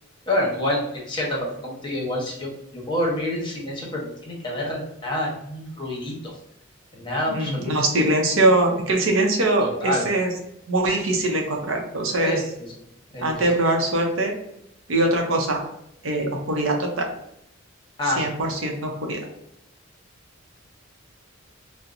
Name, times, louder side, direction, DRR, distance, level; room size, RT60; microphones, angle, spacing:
voice 1, 0.3-6.3 6.9-7.7 9.8-10.1 12.1-12.5 13.1-13.3 18.0-18.3, left 1 dB, 25° left, -3 dB, 0.9 m, -27 dB
voice 2, 7.3-10.3 10.7-12.4 13.2-14.3 14.9-15.6 16.0-17.1 18.0-19.2, right 2 dB, 85° right, 2 dB, 0.7 m, -22 dB
4.3 x 2.1 x 2.5 m, 0.78 s
head